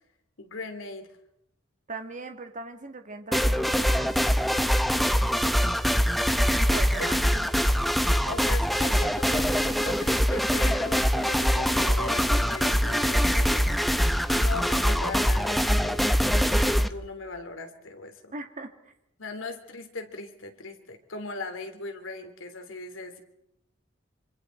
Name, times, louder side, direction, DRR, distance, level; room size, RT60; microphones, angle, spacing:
voice 1, 0.4-1.1 7.0-7.1 8.2-13.7 14.3-18.3 19.2-23.2, left 3 dB, 90° left, 6 dB, 3.0 m, -39 dB
voice 2, 1.9-4.2 6.6-7.9 18.3-18.9 19.4-19.5, right 3 dB, 40° right, 6 dB, 2.0 m, -39 dB
sound 1, 3.3-16.9, equal, ahead, 0.8 m, -23 dB
26.0 x 25.5 x 4.5 m, 0.83 s
head